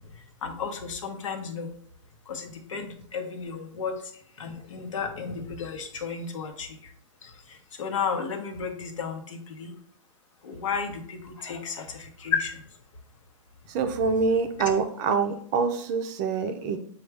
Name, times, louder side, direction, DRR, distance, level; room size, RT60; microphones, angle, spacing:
voice 1, 0.4-1.7 2.3-4.0 4.4-6.7 7.8-9.7 10.4-12.5, left 6 dB, 75° left, 5 dB, 0.9 m, -33 dB
voice 2, 13.7-16.8, right 5 dB, 35° right, 7 dB, 0.5 m, -25 dB
6.8 x 2.3 x 3.3 m, 0.63 s
hypercardioid pair, 150°, 16 cm